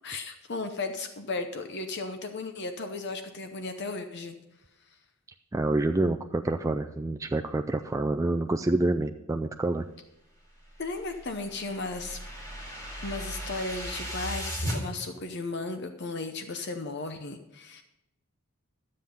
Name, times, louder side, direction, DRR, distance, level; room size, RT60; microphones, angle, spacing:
voice 1, 0.0-4.4 10.8-12.2 13.0-17.8, left 3 dB, 50° left, 7 dB, 0.8 m, -35 dB
voice 2, 5.5-9.8, right 2 dB, 15° right, 5 dB, 0.3 m, -27 dB
sound 1, 10.7-14.8, equal, 15° left, 2.4 m, -36 dB
12.5 x 7.6 x 5.4 m, 0.90 s
head